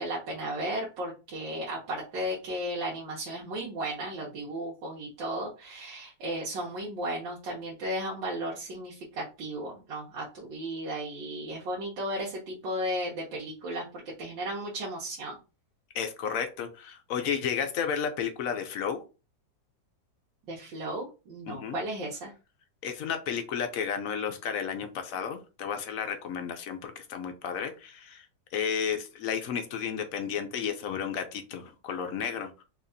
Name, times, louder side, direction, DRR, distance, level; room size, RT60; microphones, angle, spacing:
voice 1, 0.0-15.4 20.5-22.3, right 1 dB, 85° right, -4 dB, 1.7 m, -35 dB
voice 2, 15.9-19.0 21.5-21.8 22.8-28.3 28.5-32.6, left 7 dB, 70° left, 7 dB, 0.8 m, -32 dB
4.4 x 2.8 x 2.6 m, 0.31 s
omnidirectional pair, 1.9 m